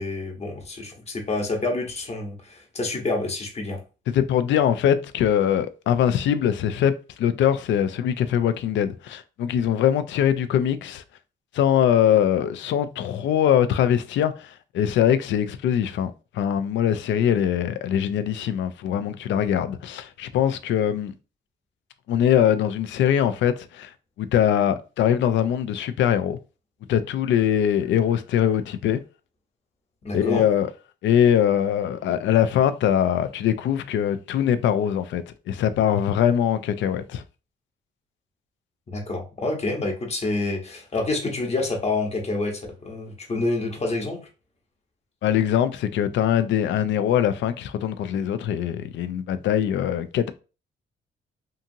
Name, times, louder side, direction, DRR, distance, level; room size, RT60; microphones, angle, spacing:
voice 1, 0.0-3.8 30.0-30.5 38.9-44.2, left 2 dB, 30° left, 1.0 m, -28 dB
voice 2, 4.1-11.0 11.5-21.1 22.1-26.4 26.9-29.0 30.1-30.7 31.0-37.2 45.2-50.3, left 9 dB, 70° left, 0.4 m, -22 dB
2.7 x 2.5 x 2.6 m
cardioid pair, 90°, 20 cm